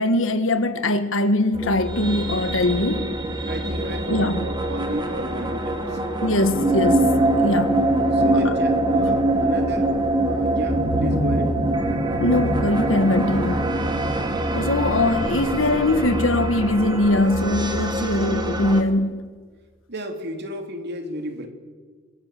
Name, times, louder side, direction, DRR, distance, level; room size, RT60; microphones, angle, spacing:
voice 1, 0.0-3.1 4.1-4.4 6.2-7.8 8.2-8.5 9.1-9.2 12.2-13.7 14.5-19.2, left 1 dB, 75° left, 9 dB, 1.7 m, -22 dB
sound 1, 1.5-18.8, right 1 dB, 20° right, 2.6 m, -23 dB
voice 2, 3.5-6.0 8.0-11.5 14.9-15.1 19.9-21.5, equal, 55° right, 5 dB, 3.4 m, -33 dB
26.0 x 22.0 x 7.7 m, 1.5 s
head